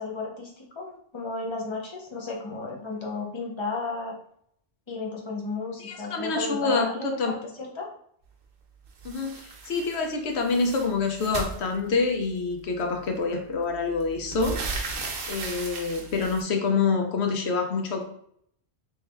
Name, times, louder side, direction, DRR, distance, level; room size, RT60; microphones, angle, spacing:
voice 1, 0.0-4.1 4.9-7.9, left 3 dB, 30° left, -1 dB, 0.7 m, -34 dB
voice 2, 5.8-7.3 9.0-14.6 15.3-18.0, left 4 dB, 80° left, 3 dB, 1.0 m, -27 dB
sound 1, 9.0-10.0 10.3-12.3 13.2-13.3 13.7-16.4, right 4 dB, 75° right, 0.9 m, -35 dB
3.3 x 2.7 x 3.3 m, 0.66 s
omnidirectional pair, 1.1 m